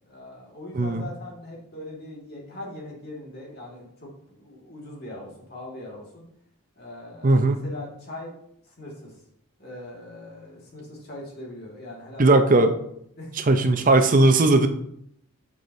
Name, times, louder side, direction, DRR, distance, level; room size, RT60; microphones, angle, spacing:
voice 1, 0.0-6.2 6.8-8.3 8.6-9.2 9.6-12.5 13.2-13.3, left 1 dB, 45° left, -3 dB, 1.9 m, -40 dB
voice 2, 0.7-1.1 7.2-7.6 12.2-12.7 13.5-14.7, right 2 dB, 35° right, 7 dB, 0.6 m, -18 dB
7.5 x 6.9 x 2.7 m, 0.72 s
head